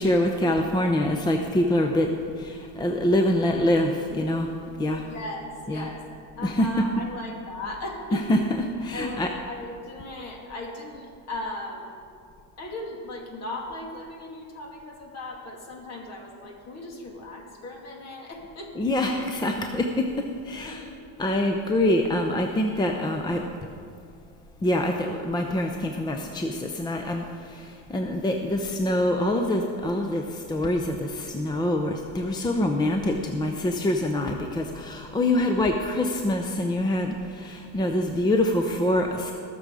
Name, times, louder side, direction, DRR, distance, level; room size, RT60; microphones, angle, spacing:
voice 1, 0.0-2.1 2.3-4.5 4.8-5.0 5.7-5.9 6.4-6.7 8.1-9.3 18.8-20.8 21.2-23.5 24.6-39.3, left 1 dB, 10° left, 3 dB, 0.7 m, -25 dB
voice 2, 5.0-6.0 6.4-8.3 8.9-12.0 12.6-18.7 20.6-21.1, left 2 dB, 45° left, 1 dB, 2.5 m, -37 dB
19.5 x 6.9 x 4.8 m, 2.3 s
supercardioid pair, 120°, 37 cm